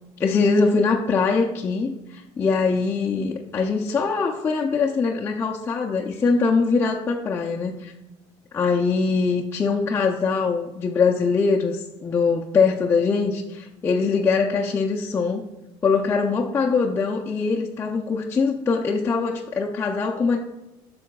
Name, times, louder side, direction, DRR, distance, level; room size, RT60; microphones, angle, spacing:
voice 1, 0.2-7.9 8.5-15.4 15.8-20.4, left 4 dB, 20° left, -2 dB, 0.5 m, -22 dB
8.2 x 6.8 x 2.3 m, 0.98 s
cardioid pair, 130°, 12 cm